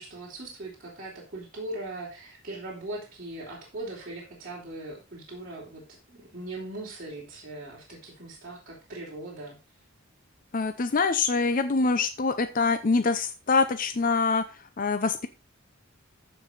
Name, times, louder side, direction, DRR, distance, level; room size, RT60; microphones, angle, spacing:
voice 1, 0.0-5.8 6.1-9.6, right 2 dB, 45° right, -7 dB, 3.7 m, -40 dB
voice 2, 10.5-14.4 14.8-15.3, left 4 dB, 45° left, 9 dB, 0.6 m, -24 dB
14.5 x 4.8 x 4.0 m, 0.30 s
head